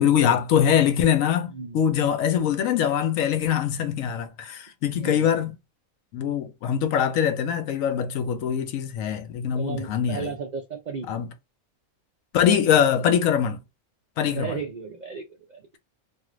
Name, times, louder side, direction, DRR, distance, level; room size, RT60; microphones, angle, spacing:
voice 1, 0.0-5.5 6.1-10.3 11.1-11.3 12.3-13.6 14.2-14.6, left 8 dB, 75° left, 1.0 m, -23 dB
voice 2, 1.5-1.8 5.0-5.3 9.5-11.1 12.9-13.0 14.2-15.7, right 5 dB, 75° right, 0.4 m, -35 dB
2.6 x 2.4 x 3.0 m
omnidirectional pair, 1.5 m